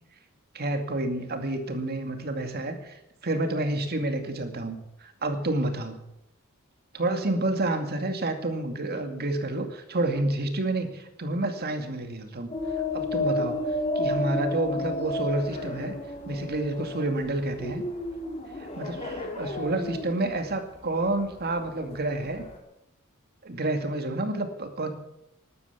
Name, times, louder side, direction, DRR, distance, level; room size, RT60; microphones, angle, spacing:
voice 1, 0.5-6.0 6.9-12.5 12.9-13.6 14.0-16.0 16.3-17.8 18.6-22.4 23.4-24.9, right 2 dB, 45° right, 6 dB, 2.3 m, -29 dB
sound 1, 12.5-22.6, left 1 dB, 30° left, 3.4 m, -32 dB
13.0 x 12.0 x 8.2 m, 0.82 s
head